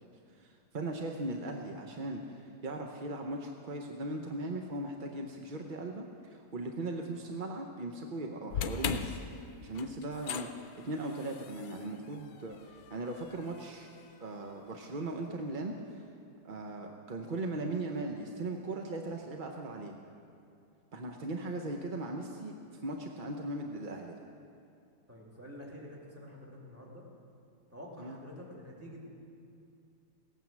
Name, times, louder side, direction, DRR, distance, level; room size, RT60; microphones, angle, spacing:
voice 1, 0.4-6.0 6.3-9.2 9.6-13.9 14.2-16.0 16.4-20.0 20.9-22.5 22.8-24.2 28.0-28.2, right 2 dB, 40° right, 2 dB, 0.7 m, -38 dB
sound 1, 8.5-14.8, left 7 dB, 65° left, 1.1 m, -41 dB
voice 2, 25.1-27.0 27.7-29.1, equal, 10° right, -3 dB, 2.4 m, -48 dB
17.5 x 9.2 x 7.3 m, 2.5 s
omnidirectional pair, 1.8 m